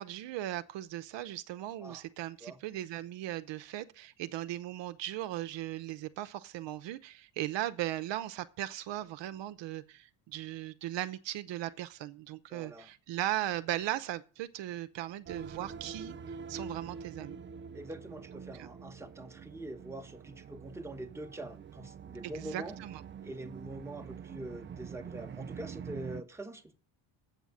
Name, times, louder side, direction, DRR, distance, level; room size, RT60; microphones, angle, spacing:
voice 1, 0.0-17.4 18.5-18.7 22.2-23.0, right 14 dB, 65° right, 0.8 m, -38 dB
voice 2, 12.5-12.9 17.7-22.8 23.2-26.7, right 1 dB, 5° right, 1.0 m, -44 dB
sound 1, 15.3-26.2, right 6 dB, 25° right, 0.4 m, -46 dB
8.2 x 6.3 x 8.2 m
cardioid pair, 110°, 47 cm